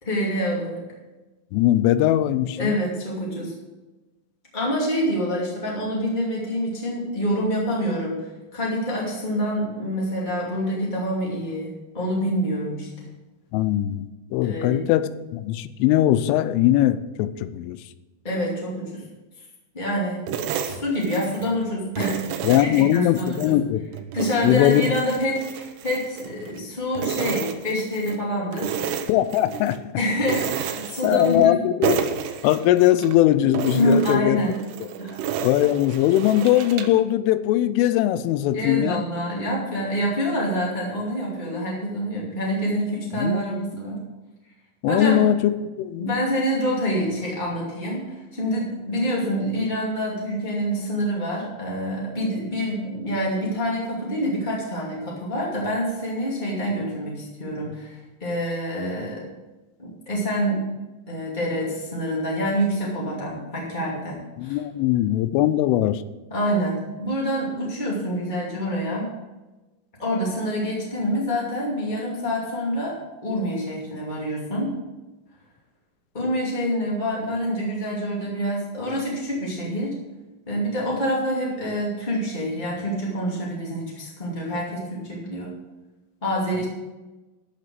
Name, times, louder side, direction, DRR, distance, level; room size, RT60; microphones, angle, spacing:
voice 1, 0.0-0.8 2.6-3.5 4.5-8.2 8.5-13.1 14.4-14.9 18.2-19.0 19.7-20.2 20.6-22.2 22.6-23.6 24.1-28.7 30.0-31.5 33.7-34.6 35.0-35.2 38.5-44.0 44.9-45.2 46.0-59.3 59.8-60.7 61.1-64.6 66.3-69.0 70.0-72.9 73.2-74.7 76.1-79.9 80.4-85.5 86.2-86.7, equal, 25° left, -5 dB, 1.0 m, -26 dB
voice 2, 1.5-2.8 13.5-17.8 22.4-23.8 24.4-25.0 29.1-29.8 31.0-32.1 32.4-34.4 34.8-34.9 35.4-39.0 43.2-43.7 44.8-46.2 64.4-66.0, left 13 dB, 85° left, 13 dB, 3.1 m, -20 dB
sound 1, 20.3-21.6 22.0-23.5 23.9-26.6 27.0-28.2 28.5-29.8 30.2-31.6 31.8-33.1 33.5-37.0, right 8 dB, 75° right, 2.5 m, -31 dB
13.5 x 6.9 x 6.2 m, 1.1 s
omnidirectional pair, 5.6 m